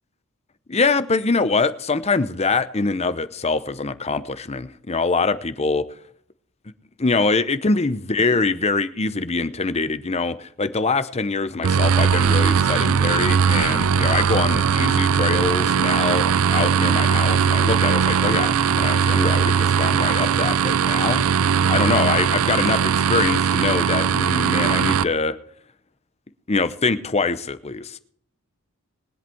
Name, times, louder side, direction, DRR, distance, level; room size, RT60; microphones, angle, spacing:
voice 1, 0.7-5.8 7.0-21.2 21.7-25.4 26.5-28.0, left 3 dB, 30° left, 13 dB, 0.8 m, -24 dB
sound 1, 11.6-25.0, right 7 dB, 75° right, 0.5 m, -19 dB
22.0 x 8.0 x 4.5 m, 0.64 s
head